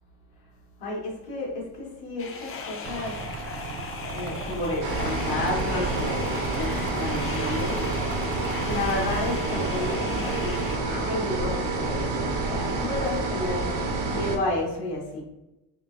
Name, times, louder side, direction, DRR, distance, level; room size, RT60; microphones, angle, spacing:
voice 1, 0.8-3.2 4.1-7.8 8.6-13.7 14.1-15.2, left 2 dB, 70° left, -3 dB, 1.4 m, -31 dB
sound 1, 2.2-10.8, left 5 dB, 35° left, 0.4 m, -38 dB
sound 2, 2.8-10.3, right 4 dB, 40° right, 0.4 m, -37 dB
sound 3, 4.8-14.4, right 3 dB, 90° right, 0.7 m, -28 dB
3.6 x 2.1 x 2.5 m, 0.96 s
cardioid pair, 100°, 39 cm